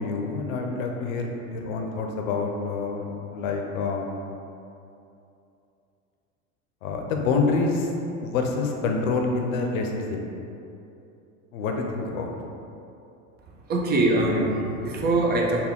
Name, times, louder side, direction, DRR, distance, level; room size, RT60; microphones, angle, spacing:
voice 1, 0.0-4.1 6.8-7.9 8.2-10.2 11.5-12.3, left 4 dB, 70° left, 2 dB, 0.6 m, -27 dB
voice 2, 13.7-15.6, right 2 dB, 25° right, 0 dB, 0.4 m, -23 dB
3.5 x 2.3 x 3.5 m, 2.7 s
hypercardioid pair, 90°, 43 cm